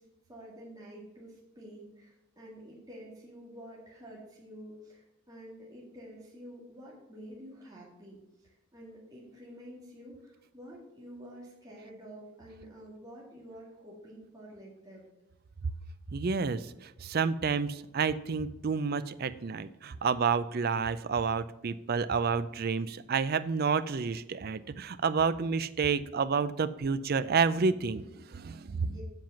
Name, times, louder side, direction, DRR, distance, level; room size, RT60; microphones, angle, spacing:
voice 1, 0.3-15.1 28.9-29.0, equal, 15° right, -5 dB, 2.0 m, -49 dB
voice 2, 16.1-28.9, right 5 dB, 45° right, 14 dB, 0.4 m, -30 dB
7.7 x 7.3 x 5.8 m, 0.98 s
head